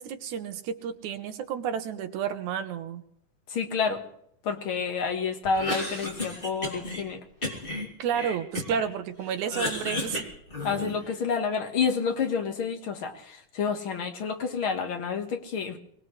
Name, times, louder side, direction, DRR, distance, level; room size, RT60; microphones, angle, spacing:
voice 1, 0.0-3.0 8.0-10.2, right 8 dB, 70° right, 8 dB, 2.2 m, -31 dB
voice 2, 3.5-4.0 4.4-7.2 10.6-15.8, left 5 dB, 50° left, 5 dB, 1.8 m, -29 dB
Cough, 5.4-7.0 7.4-8.9 9.2-11.1, left 1 dB, 15° left, 2.6 m, -33 dB
24.0 x 18.5 x 3.3 m, 0.72 s
omnidirectional pair, 3.8 m